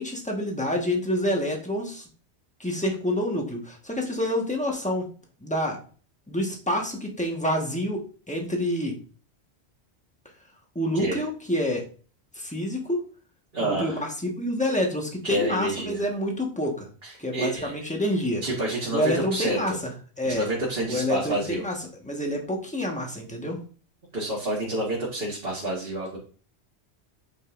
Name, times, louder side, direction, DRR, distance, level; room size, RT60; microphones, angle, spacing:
voice 1, 0.0-2.0 2.6-5.1 5.4-5.8 6.3-8.0 8.3-9.0 10.7-11.8 12.3-13.0 13.6-16.9 17.2-18.4 18.9-19.9 20.2-20.5 20.9-23.6, equal, 5° left, 1 dB, 1.5 m, -27 dB
voice 2, 13.5-14.1 15.2-16.0 17.0-17.7 18.4-19.8 20.3-21.6 24.1-26.2, right 1 dB, 65° right, -5 dB, 2.1 m, -28 dB
9.2 x 5.3 x 2.6 m, 0.39 s
omnidirectional pair, 1.1 m